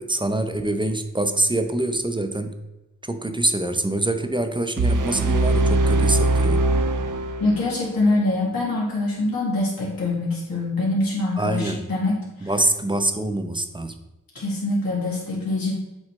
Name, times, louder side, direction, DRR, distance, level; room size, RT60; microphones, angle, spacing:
voice 1, 0.0-2.6 3.0-6.7 11.4-11.8 12.4-14.0, right 2 dB, 15° right, 7 dB, 0.6 m, -25 dB
sound 1, 4.8-7.8, right 2 dB, 65° right, 0.6 m, -21 dB
voice 2, 7.4-12.5 14.3-15.7, left 2 dB, 90° left, -5 dB, 2.1 m, -24 dB
7.7 x 3.2 x 4.2 m, 1.0 s
cardioid pair, 50°, 34 cm